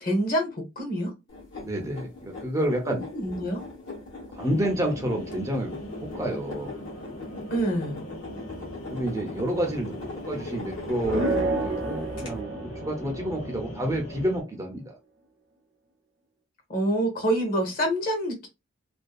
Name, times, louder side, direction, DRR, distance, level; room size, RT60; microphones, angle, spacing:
voice 1, 0.0-1.1 2.9-3.6 4.5-4.6 7.5-8.0 16.7-18.5, right 1 dB, 45° left, 2 dB, 0.8 m, -27 dB
sound 1, 1.3-11.8 12.2-12.3, left 2 dB, 70° left, 1.1 m, -40 dB
voice 2, 1.6-3.0 4.3-6.7 8.9-12.5 12.8-14.9, right 1 dB, 15° right, 2 dB, 0.4 m, -29 dB
sound 2, 4.4-14.4, equal, 90° left, 0.8 m, -40 dB
sound 3, 11.0-13.8, right 2 dB, 65° right, 0.6 m, -29 dB
2.5 x 2.1 x 2.3 m, 0.24 s
head